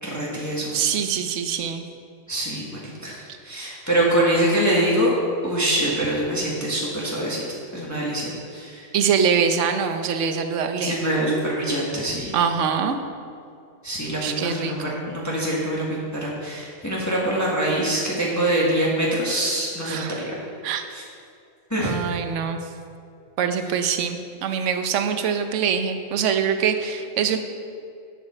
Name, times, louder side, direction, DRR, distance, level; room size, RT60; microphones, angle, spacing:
voice 1, 0.0-0.7 2.3-3.2 3.4-5.1 5.4-7.4 7.7-8.8 10.8-12.3 13.8-20.3 20.9-21.0 21.7-21.9, right 1 dB, 15° left, -5 dB, 1.4 m, -24 dB
voice 2, 0.7-1.8 8.9-11.0 12.3-13.0 14.2-15.0 19.8-20.3 20.6-20.9 21.8-22.6 23.4-27.4, right 7 dB, 70° right, 7 dB, 1.0 m, -24 dB
10.5 x 7.3 x 4.3 m, 2.4 s
omnidirectional pair, 1.4 m